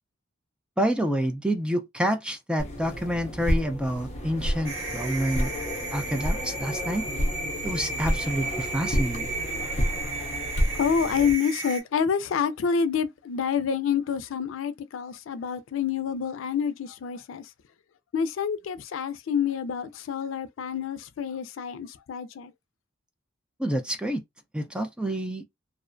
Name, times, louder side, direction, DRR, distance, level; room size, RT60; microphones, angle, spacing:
voice 1, 0.8-5.5 5.9-7.1 7.6-9.3 23.6-24.2 24.5-25.4, right 1 dB, 5° right, 0.3 m, -28 dB
sound 1, 2.6-11.3, equal, 35° left, 0.6 m, -30 dB
sound 2, 4.6-11.8, right 3 dB, 75° right, 1.2 m, -34 dB
voice 2, 10.8-17.5 18.1-22.5, left 7 dB, 90° left, 0.4 m, -28 dB
2.4 x 2.0 x 2.5 m
head